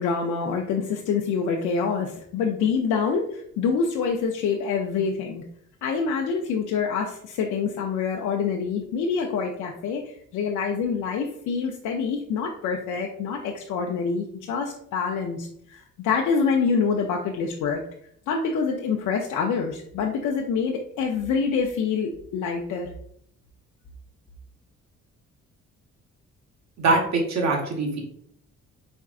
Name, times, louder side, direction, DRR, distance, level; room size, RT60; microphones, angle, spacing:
voice 1, 0.0-5.4 5.8-10.0 10.3-17.8 18.3-22.9, left 5 dB, 80° left, 1 dB, 0.6 m, -26 dB
voice 2, 26.8-28.0, right 3 dB, 65° right, 1 dB, 1.2 m, -23 dB
4.4 x 3.6 x 2.4 m, 0.66 s
cardioid pair, 90°, 30 cm